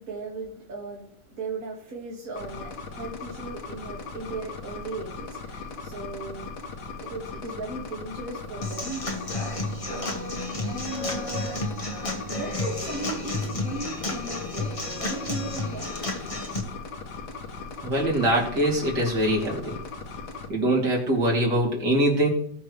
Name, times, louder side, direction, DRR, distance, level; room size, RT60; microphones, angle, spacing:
voice 1, 0.0-6.6 7.0-9.1 9.9-11.6 12.3-15.9, right 3 dB, 55° right, -4 dB, 2.4 m, -37 dB
sound 1, 2.4-20.5, left 4 dB, 70° left, 1.7 m, -38 dB
Human voice / Acoustic guitar / Drum, 8.6-16.6, left 2 dB, 20° left, 1.2 m, -31 dB
voice 2, 17.8-19.8 20.5-22.3, right 1 dB, 75° right, -3 dB, 3.6 m, -23 dB
18.5 x 6.4 x 3.3 m, 0.69 s
omnidirectional pair, 1.9 m